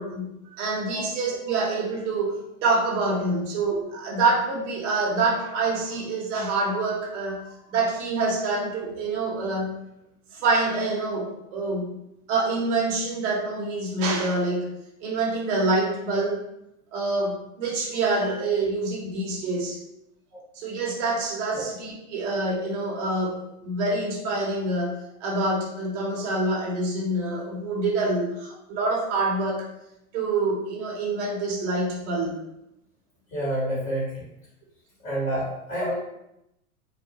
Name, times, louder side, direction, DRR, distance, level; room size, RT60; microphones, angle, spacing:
voice 1, 0.0-7.4 7.7-9.7 10.3-11.9 12.3-14.7 15.0-16.4 16.9-19.8 20.5-24.9 25.2-29.7 30.1-32.3, right 2 dB, 55° right, -2 dB, 1.0 m, -26 dB
voice 2, 33.3-34.3 35.0-35.9, right 1 dB, 15° left, -8 dB, 1.1 m, -28 dB
2.4 x 2.2 x 2.8 m, 0.82 s
hypercardioid pair, 125°, 44 cm